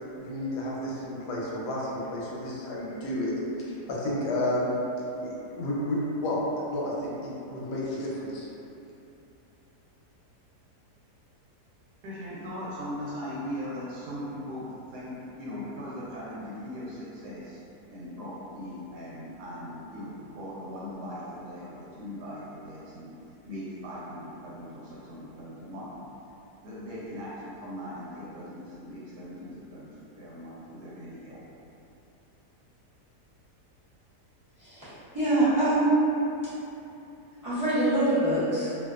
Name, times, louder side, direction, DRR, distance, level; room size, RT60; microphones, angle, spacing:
voice 1, 0.2-4.8 5.2-8.5, left 1 dB, 85° left, -5 dB, 1.2 m, -31 dB
voice 2, 12.0-17.6 17.9-23.1 23.4-26.0 26.6-31.4, equal, 80° right, -8 dB, 1.1 m, -39 dB
voice 3, 34.6-36.0 37.4-38.7, right 2 dB, 25° right, -15 dB, 0.4 m, -24 dB
2.7 x 2.2 x 2.3 m, 2.8 s
omnidirectional pair, 1.7 m